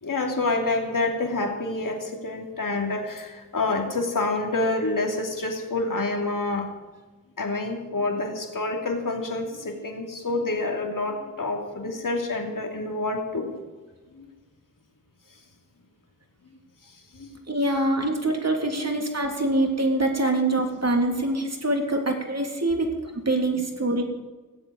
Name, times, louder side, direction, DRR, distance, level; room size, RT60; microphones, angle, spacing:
voice 1, 0.0-6.7 7.4-13.6 14.1-14.3 16.9-17.4 18.7-18.9 19.5-19.6 21.9-22.0, left 2 dB, 70° left, 2 dB, 2.7 m, -28 dB
voice 2, 17.5-24.0, right 2 dB, 50° right, 2 dB, 3.2 m, -24 dB
16.5 x 7.8 x 9.2 m, 1.3 s
cardioid pair, 45°, 33 cm